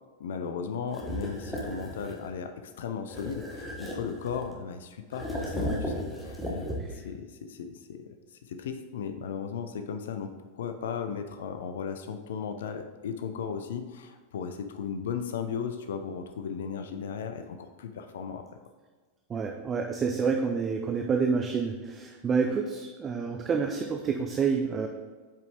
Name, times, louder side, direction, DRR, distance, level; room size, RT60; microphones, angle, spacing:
voice 1, 0.2-18.4, left 6 dB, 60° left, 7 dB, 0.5 m, -36 dB
sound 1, 0.9-2.3 3.1-4.6 5.1-7.1, equal, ahead, 1.2 m, -35 dB
voice 2, 19.3-24.9, right 5 dB, 25° right, 3 dB, 0.5 m, -28 dB
7.5 x 4.9 x 3.4 m, 1.4 s
figure-of-eight pair, 90°, 0 cm